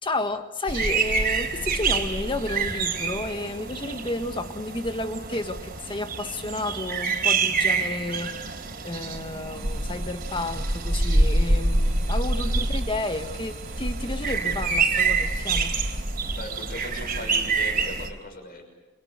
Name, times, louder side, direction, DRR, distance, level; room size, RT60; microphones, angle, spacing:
voice 1, 0.0-8.3 8.8-15.8, left 2 dB, 25° left, 7 dB, 1.6 m, -31 dB
sound 1, 0.7-18.1, right 3 dB, 45° right, 3.8 m, -26 dB
sound 2, 9.5-16.0, right 3 dB, 80° right, 4.0 m, -43 dB
voice 2, 12.4-12.8 16.3-18.6, left 2 dB, 45° left, 4 dB, 6.4 m, -39 dB
28.5 x 26.5 x 6.6 m, 1.1 s
head